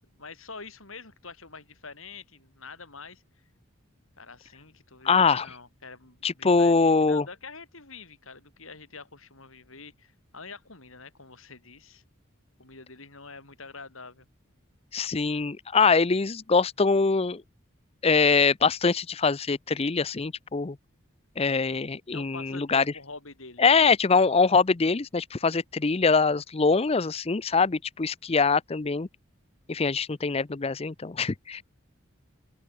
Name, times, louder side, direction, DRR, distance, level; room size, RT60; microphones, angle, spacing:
voice 1, 0.0-3.2 4.2-12.0 12.6-14.3 22.1-23.8, left 4 dB, 75° left, 5.8 m, -46 dB
voice 2, 5.0-5.5 6.2-7.2 14.9-17.4 18.0-20.8 21.4-22.8 23.6-29.1 29.7-31.6, left 4 dB, 30° left, 0.5 m, -23 dB
open air
head